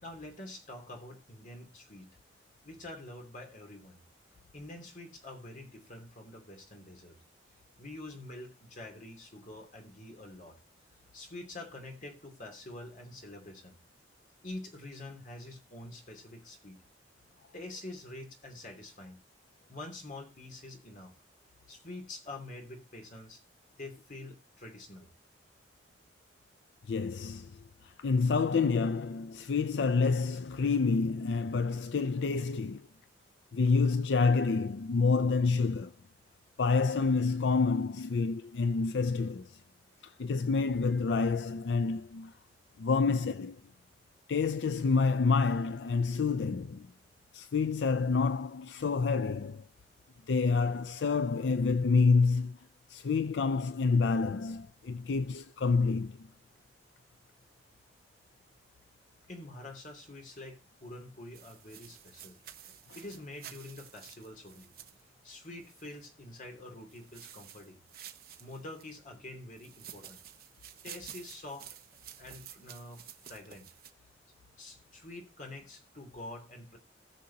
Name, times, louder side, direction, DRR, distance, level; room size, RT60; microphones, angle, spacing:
voice 1, 0.0-2.2 2.6-4.0 4.5-7.2 7.8-10.6 11.1-13.8 14.4-16.8 17.5-19.2 19.7-21.1 21.7-23.4 23.8-25.1 59.3-62.4 62.6-64.7 65.2-67.8 68.4-70.2 70.8-71.8 72.2-73.7 74.6-76.8, left 2 dB, 45° left, 2.8 m, -46 dB
voice 2, 26.9-32.9 33.5-35.9 36.6-39.6 40.0-42.3 42.8-43.6 44.3-46.9 47.3-49.6 50.3-52.6 52.9-56.3, left 4 dB, 75° left, 0.5 m, -28 dB
sound 1, 61.3-66.1 66.9-68.9 69.5-73.9, right 10 dB, 55° right, 1.1 m, -51 dB
18.5 x 6.4 x 2.8 m
head